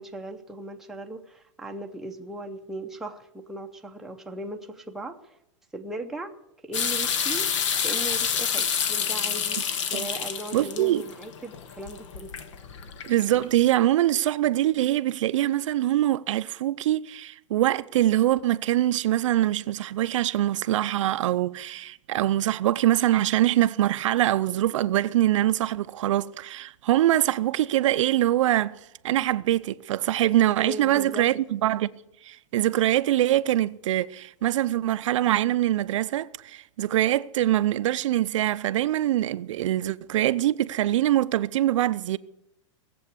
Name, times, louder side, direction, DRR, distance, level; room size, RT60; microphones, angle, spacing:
voice 1, 0.0-5.3 5.7-6.4 6.6-7.5 7.8-9.6 9.9-12.3 30.6-31.3, right 1 dB, ahead, 0.7 m, -38 dB
sound 1, 6.7-13.6, left 7 dB, 65° left, 1.4 m, -28 dB
voice 2, 10.5-11.0 13.0-28.7 29.0-31.9 32.2-42.2, right 13 dB, 65° right, 0.5 m, -23 dB
18.5 x 7.8 x 8.3 m
supercardioid pair, 160°, 17 cm